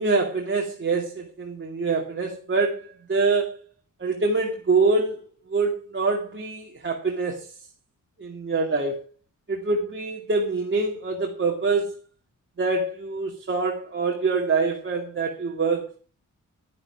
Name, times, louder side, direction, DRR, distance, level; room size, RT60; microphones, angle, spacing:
voice 1, 0.0-3.6 4.0-5.2 5.5-7.5 8.2-9.0 9.5-12.0 12.6-16.0, right 3 dB, 40° right, 2.4 m, -25 dB
11.0 x 11.0 x 4.7 m
cardioid pair, 95°, 31 cm